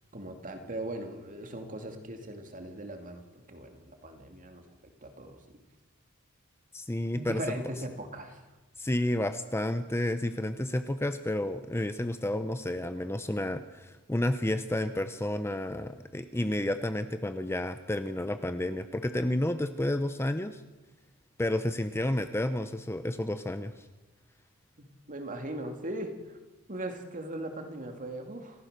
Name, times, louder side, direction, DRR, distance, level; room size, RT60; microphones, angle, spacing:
voice 1, 0.1-5.4 7.1-8.5 24.8-26.4 26.7-28.7, right 1 dB, 40° right, 5 dB, 2.4 m, -39 dB
voice 2, 6.7-7.4 8.8-20.6 21.4-23.8, left 1 dB, 10° left, 10 dB, 0.7 m, -31 dB
27.5 x 14.5 x 6.7 m, 1.1 s
head